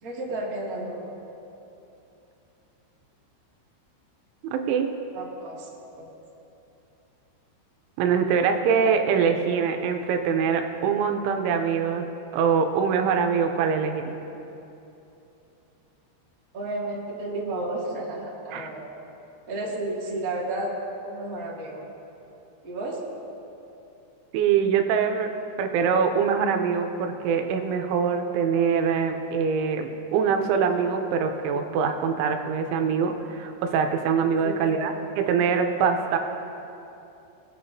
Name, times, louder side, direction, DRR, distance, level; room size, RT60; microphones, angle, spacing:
voice 1, 0.0-1.1 5.1-5.7 5.9-6.0 16.5-18.9 19.5-20.7 21.0-21.8 22.6-23.0 34.4-35.0, right 2 dB, 35° right, -7 dB, 1.5 m, -32 dB
voice 2, 4.5-4.9 8.0-12.1 12.3-14.1 18.5-18.7 24.3-25.3 25.6-36.2, right 6 dB, 85° right, 5 dB, 3.2 m, -24 dB
24.0 x 8.5 x 2.7 m, 2.9 s
omnidirectional pair, 5.4 m